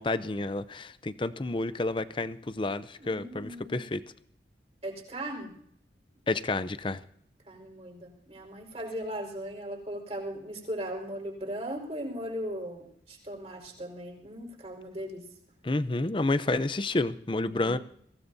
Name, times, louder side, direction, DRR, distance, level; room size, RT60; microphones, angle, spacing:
voice 1, 0.0-4.0 6.3-7.0 15.6-17.8, left 2 dB, 30° left, 14 dB, 0.6 m, -30 dB
voice 2, 3.0-3.8 4.8-5.5 7.5-15.2 17.5-17.8, equal, 35° right, -1 dB, 4.9 m, -38 dB
22.5 x 17.0 x 2.7 m, 0.66 s
head